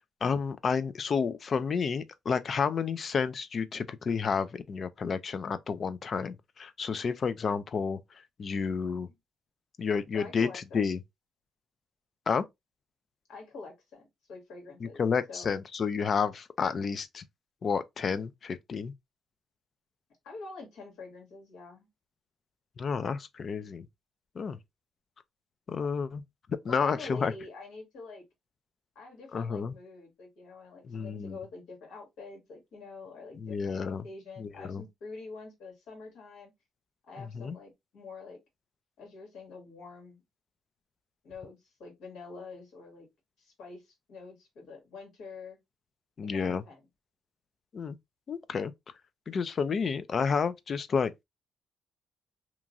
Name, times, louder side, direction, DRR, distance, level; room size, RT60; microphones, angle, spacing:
voice 1, 0.0-8.0 8.4-9.1 9.8-11.0 12.3-12.4 14.8-17.2 17.6-18.9 22.8-23.9 24.4-24.6 25.7-26.2 26.6-27.3 29.3-29.7 30.8-31.4 33.4-34.0 34.4-34.8 37.2-37.6 46.2-46.6 47.7-48.0 48.3-48.7 49.3-51.2, left 5 dB, 50° left, 0.4 m, -30 dB
voice 2, 10.1-10.9 13.3-14.0 14.3-15.0 15.3-15.5 20.2-21.9 26.7-28.2 28.9-36.5 37.0-38.4 39.0-40.2 41.2-43.1 43.4-45.6 46.2-46.9, left 4 dB, 80° left, 1.6 m, -46 dB
2.9 x 2.4 x 2.5 m
cardioid pair, 90°, 0 cm